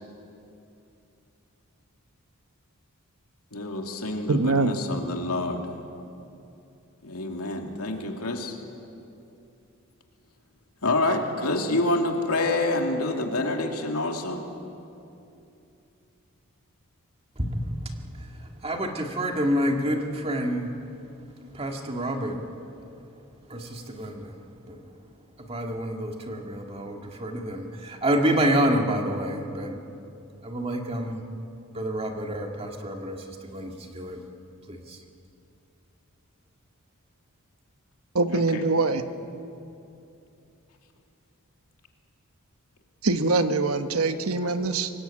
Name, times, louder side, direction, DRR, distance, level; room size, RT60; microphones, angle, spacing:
voice 1, 3.5-5.6 7.0-8.6 10.8-14.5 38.3-38.6 44.4-44.8, left 2 dB, 85° left, 2 dB, 2.7 m, -27 dB
voice 2, 4.3-4.8 38.1-39.0 43.0-44.9, right 3 dB, 75° right, 9 dB, 1.1 m, -23 dB
voice 3, 17.4-17.7 18.4-20.7 21.5-22.4 23.5-24.3 24.7-24.8 25.4-29.8 30.4-31.2 31.7-34.2 34.7-35.0, equal, 25° right, 2 dB, 2.0 m, -28 dB
24.5 x 20.5 x 8.8 m, 2.7 s
head